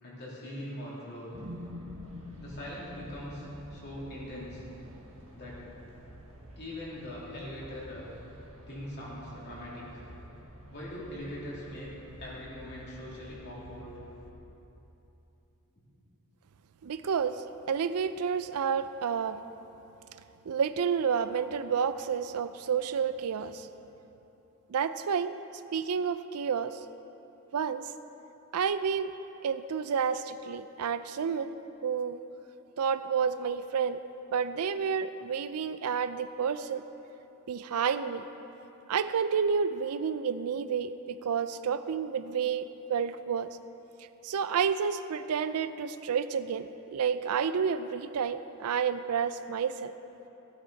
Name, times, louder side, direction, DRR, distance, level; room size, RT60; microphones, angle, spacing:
voice 1, 0.0-1.3 2.4-4.6 5.3-5.7 6.6-8.1 8.7-10.0 10.7-11.9 12.2-14.0, left 1 dB, 50° left, -6 dB, 3.0 m, -41 dB
sound 1, 1.3-14.3, equal, 65° right, 1.7 m, -48 dB
voice 2, 16.8-19.4 20.5-23.7 24.7-25.3 25.7-26.8 27.5-27.9 28.5-29.1 29.4-31.5 31.8-32.2 32.8-34.0 34.3-36.8 37.5-38.3 38.9-43.6 44.2-49.9, right 6 dB, 85° right, 13 dB, 0.4 m, -30 dB
15.5 x 9.0 x 4.0 m, 3.0 s
head